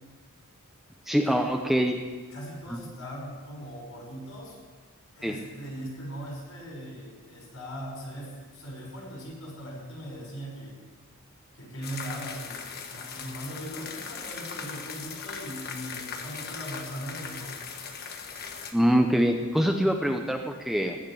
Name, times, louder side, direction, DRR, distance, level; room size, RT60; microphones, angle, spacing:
voice 1, 1.1-2.0 2.7-2.8 5.2-5.4 18.7-21.0, equal, ahead, 3 dB, 0.8 m, -24 dB
voice 2, 2.3-4.6 5.1-10.7 11.5-17.6, equal, 75° left, -1 dB, 6.1 m, -40 dB
sound 1, 11.8-18.7, left 5 dB, 45° left, 1.3 m, -39 dB
17.5 x 6.5 x 9.9 m, 1.4 s
head